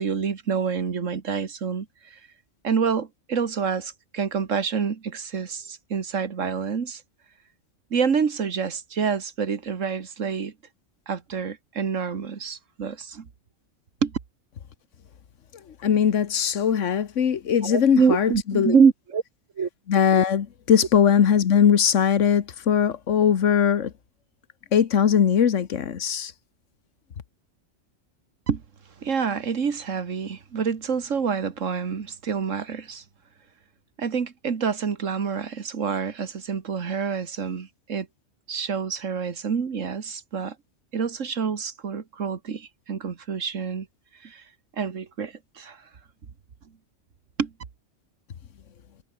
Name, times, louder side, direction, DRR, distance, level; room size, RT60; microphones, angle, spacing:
voice 1, 0.0-2.2 2.6-7.0 7.9-10.5 11.1-13.3 14.0-14.1 17.6-19.2 19.6-19.7 28.5-28.6 29.0-33.0 34.0-38.1 38.5-40.6 40.9-43.9 44.2-44.4 44.8-45.8 47.4-47.5, right 6 dB, 85° right, 1.9 m, -27 dB
voice 2, 15.8-18.7 19.9-23.9 24.7-26.3, left 8 dB, 80° left, 1.5 m, -20 dB
omnidirectional pair, 1.3 m